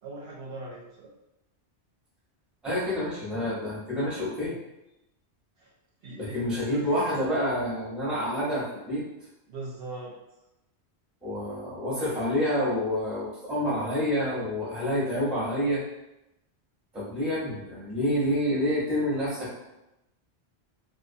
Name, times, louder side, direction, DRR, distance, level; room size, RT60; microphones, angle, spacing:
voice 1, 0.0-1.1 5.6-5.7 6.0-7.2 9.5-10.1, right 2 dB, 65° right, -3 dB, 0.7 m, -40 dB
voice 2, 2.6-4.6 6.2-9.0 11.2-15.8 16.9-19.6, equal, ahead, -7 dB, 0.6 m, -28 dB
2.4 x 2.2 x 2.6 m, 0.91 s
omnidirectional pair, 1.1 m